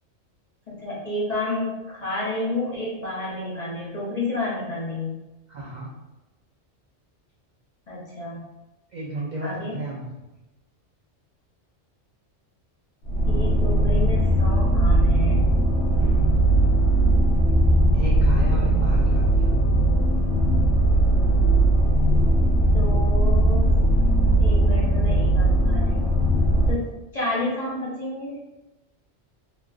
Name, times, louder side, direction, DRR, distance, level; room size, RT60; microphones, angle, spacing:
voice 1, 0.7-5.2 7.9-8.5 9.4-9.8 13.3-15.5 22.7-26.1 26.7-28.4, left 2 dB, 45° left, -7 dB, 0.6 m, -30 dB
voice 2, 5.5-5.9 8.9-10.1 16.0-16.4 17.9-19.5, right 1 dB, 65° right, -4 dB, 0.4 m, -33 dB
sound 1, 13.1-26.7, right 1 dB, 75° left, 1.0 m, -19 dB
3.1 x 2.3 x 2.3 m, 1.0 s
omnidirectional pair, 1.2 m